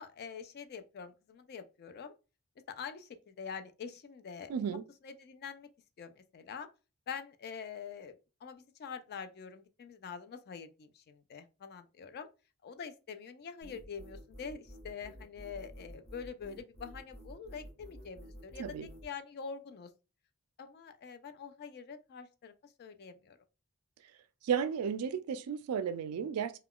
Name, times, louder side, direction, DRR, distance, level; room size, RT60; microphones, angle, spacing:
voice 1, 0.0-2.1 2.7-4.8 5.0-5.7 6.0-6.7 7.1-8.2 8.4-12.3 12.6-19.9 20.6-22.5 22.8-23.4, left 6 dB, 45° left, 0.3 m, -45 dB
voice 2, 4.5-4.8 18.6-18.9 24.4-26.5, right 7 dB, 80° right, 0.3 m, -33 dB
sound 1, 13.6-19.1, equal, 30° left, 0.8 m, -50 dB
2.2 x 2.2 x 3.6 m
head